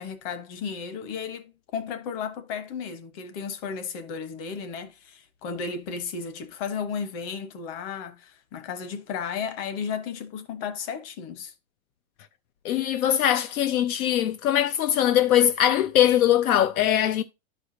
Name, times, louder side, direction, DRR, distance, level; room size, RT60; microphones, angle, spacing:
voice 1, 0.0-11.5, left 6 dB, 40° left, 1.3 m, -34 dB
voice 2, 12.6-17.2, left 11 dB, 75° left, 0.7 m, -21 dB
11.5 x 4.9 x 2.8 m
supercardioid pair, 150°, 43 cm